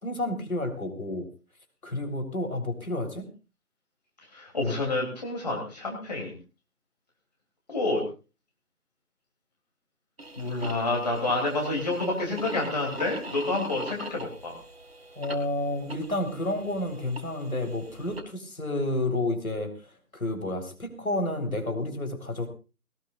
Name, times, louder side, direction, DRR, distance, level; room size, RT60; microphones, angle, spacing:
voice 1, 0.0-1.3 1.8-3.3 15.2-22.5, left 1 dB, 60° left, 6 dB, 4.2 m, -30 dB
voice 2, 4.3-6.3 7.7-8.0 10.4-14.5, left 2 dB, 25° left, 0 dB, 3.0 m, -28 dB
sound 1, 10.2-18.2, right 1 dB, 40° right, 2.4 m, -42 dB
20.5 x 19.0 x 2.5 m, 0.32 s
figure-of-eight pair, 160°, 47 cm